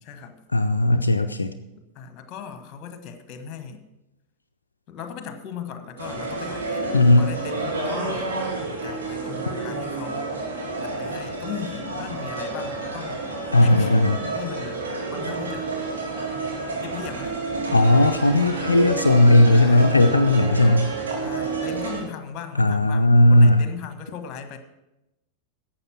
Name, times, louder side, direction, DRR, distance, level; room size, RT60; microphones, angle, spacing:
voice 1, 0.0-0.4 1.7-3.8 4.9-10.3 10.8-13.2 13.6-15.7 16.8-17.4 19.5-20.0 21.2-24.6, left 7 dB, 35° left, 8 dB, 1.4 m, -38 dB
voice 2, 0.5-1.5 6.9-7.3 13.5-14.2 17.7-20.9 22.6-23.7, left 1 dB, 80° left, 7 dB, 0.4 m, -16 dB
sound 1, 6.0-22.0, right 3 dB, 65° right, 3.0 m, -29 dB
11.5 x 7.9 x 5.9 m, 0.93 s
figure-of-eight pair, 90°, 0 cm